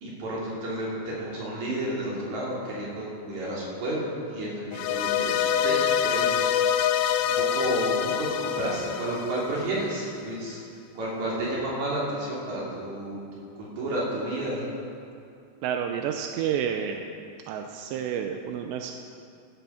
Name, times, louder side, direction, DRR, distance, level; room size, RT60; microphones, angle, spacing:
voice 1, 0.0-6.4 7.2-10.6 11.0-13.2 13.6-14.6, right 1 dB, 40° right, -6 dB, 4.1 m, -31 dB
sound 1, 4.7-10.0, left 9 dB, 90° left, 3.0 m, -26 dB
voice 2, 15.6-17.0 17.5-18.9, right 8 dB, 85° right, 4 dB, 2.6 m, -30 dB
15.5 x 10.5 x 5.8 m, 2.4 s
omnidirectional pair, 5.4 m